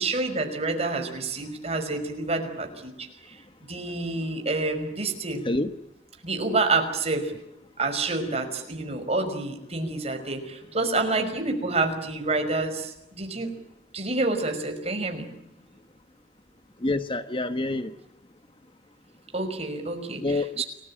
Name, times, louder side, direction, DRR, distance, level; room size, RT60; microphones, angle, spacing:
voice 1, 0.0-2.9 3.3-3.4 3.7-5.4 6.2-7.3 7.8-13.5 13.9-15.3 19.3-20.6, right 3 dB, 35° right, 5 dB, 5.6 m, -28 dB
voice 2, 16.8-17.9 20.2-20.6, left 2 dB, 30° left, 10 dB, 1.2 m, -27 dB
30.0 x 20.0 x 8.9 m, 0.83 s
head